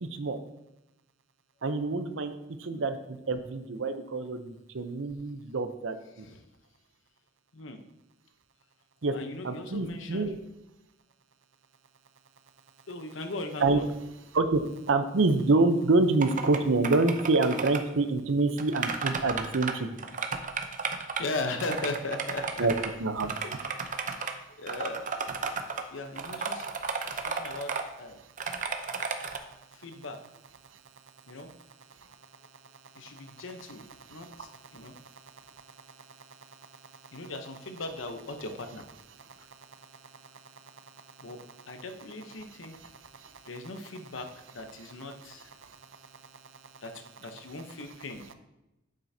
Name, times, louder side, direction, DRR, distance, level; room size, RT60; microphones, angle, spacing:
voice 1, 1.6-2.3 2.6-3.0 3.3-5.9 9.0-9.1 9.4-10.4 13.6-13.8 14.3-14.6 14.9-19.9 22.6-22.7 23.0-23.3, right 3 dB, 85° right, 9 dB, 0.7 m, -26 dB
voice 2, 9.1-10.3 12.9-13.9 21.2-22.7 23.4-24.0 24.6-25.4 25.9-26.7 27.1-28.2 29.7-30.2 31.3-31.5 32.9-35.0 37.1-38.9 41.2-42.8 43.4-45.5 46.8-48.3, left 2 dB, 85° left, 6 dB, 0.9 m, -38 dB
sound 1, 16.2-16.6 16.8-17.8 18.6-19.7 20.0-21.2 21.6-22.9 23.2-24.3 24.7-25.8 26.2-27.8 28.4-29.4, right 5 dB, 40° right, 0.6 m, -33 dB
9.1 x 7.6 x 2.7 m, 0.92 s
head